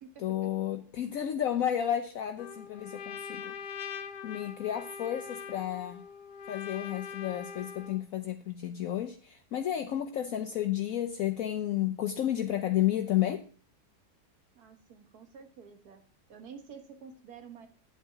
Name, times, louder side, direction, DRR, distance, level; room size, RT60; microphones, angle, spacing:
voice 1, 0.2-3.5 4.2-6.1 6.5-13.4, left 11 dB, 65° left, 7 dB, 1.0 m, -32 dB
Trumpet, 2.4-8.0, left 7 dB, 85° left, 1.5 m, -42 dB
voice 2, 14.6-16.0 16.3-17.7, right 6 dB, 70° right, 7 dB, 1.8 m, -49 dB
9.7 x 8.4 x 3.4 m, 0.41 s
omnidirectional pair, 1.7 m